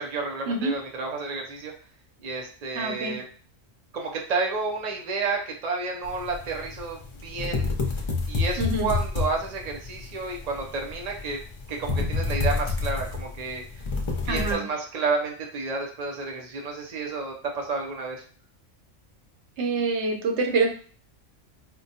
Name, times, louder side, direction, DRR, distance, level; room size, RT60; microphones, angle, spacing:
voice 1, 0.0-1.7 2.2-3.2 3.9-7.7 8.3-11.4 11.7-13.6 14.3-18.2, right 4 dB, 50° right, 0 dB, 0.5 m, -31 dB
voice 2, 2.7-3.2 8.6-8.9 14.3-14.6 19.6-20.7, right 3 dB, 70° right, 4 dB, 1.0 m, -26 dB
sound 1, 6.0-14.5, left 4 dB, 40° left, 0.4 m, -29 dB
4.3 x 2.2 x 2.7 m, 0.42 s
omnidirectional pair, 1.3 m